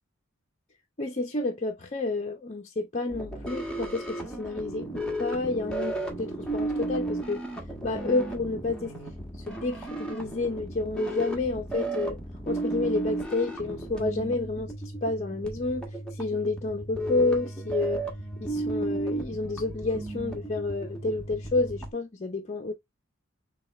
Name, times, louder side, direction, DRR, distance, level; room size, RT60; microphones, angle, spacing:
voice 1, 1.0-7.4 7.8-8.9 9.5-12.2 12.5-14.7 15.0-18.0 18.4-22.7, left 3 dB, 35° left, 0.8 m, -30 dB
sound 1, 3.1-21.9, right 2 dB, 5° left, 1.4 m, -34 dB
6.9 x 2.4 x 3.2 m
head